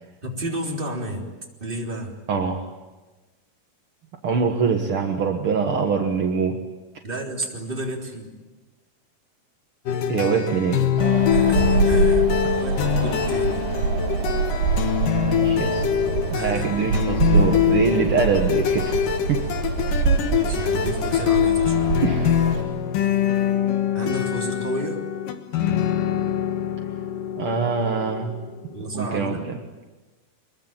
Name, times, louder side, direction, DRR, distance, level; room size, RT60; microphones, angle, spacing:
voice 1, 0.2-1.3 1.6-2.1 7.0-8.3 11.3-12.3 12.6-13.6 16.3-16.6 19.0-19.2 20.2-22.0 23.9-25.1 28.7-29.6, right 1 dB, 15° right, 0 dB, 3.4 m, -31 dB
voice 2, 2.3-2.7 4.2-6.6 10.1-11.0 15.2-15.9 16.3-19.5 22.0-22.3 27.3-28.3 28.9-29.6, right 5 dB, 60° right, 3 dB, 1.4 m, -24 dB
sound 1, 9.9-29.2, left 9 dB, 65° left, 2.8 m, -24 dB
Wind, 11.0-22.6, right 4 dB, 75° right, 5.7 m, -25 dB
25.0 x 22.5 x 9.1 m, 1.2 s
omnidirectional pair, 4.6 m